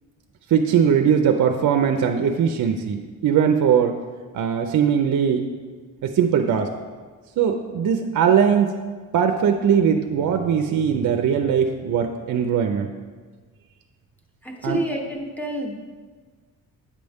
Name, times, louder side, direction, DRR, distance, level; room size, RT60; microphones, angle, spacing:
voice 1, 0.5-4.0 4.3-5.4 6.0-6.7 7.4-8.7 9.1-12.9 14.6-14.8, right 7 dB, 60° right, 5 dB, 0.5 m, -20 dB
voice 2, 14.4-15.7, right 1 dB, 5° left, 1 dB, 1.0 m, -28 dB
8.6 x 5.2 x 3.5 m, 1.5 s
cardioid pair, 95°, 35 cm